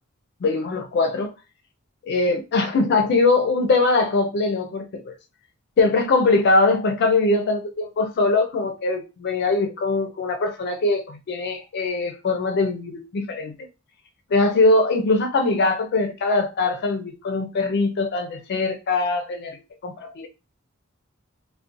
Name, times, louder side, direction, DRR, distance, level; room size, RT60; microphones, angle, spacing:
voice 1, 0.4-1.3 2.1-5.1 5.8-13.6 14.3-20.3, left 3 dB, 50° left, 0.4 m, -22 dB
2.5 x 2.1 x 2.5 m
head